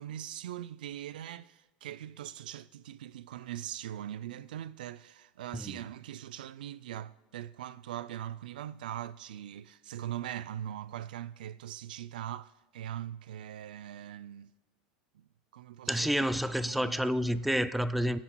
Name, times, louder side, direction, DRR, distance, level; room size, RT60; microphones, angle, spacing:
voice 1, 0.0-14.5 15.1-15.2 15.5-16.1 16.7-16.9, right 11 dB, 90° right, 0.3 m, -41 dB
voice 2, 15.9-18.2, equal, ahead, 0.3 m, -29 dB
23.0 x 10.0 x 2.2 m
supercardioid pair, 115°, 5 cm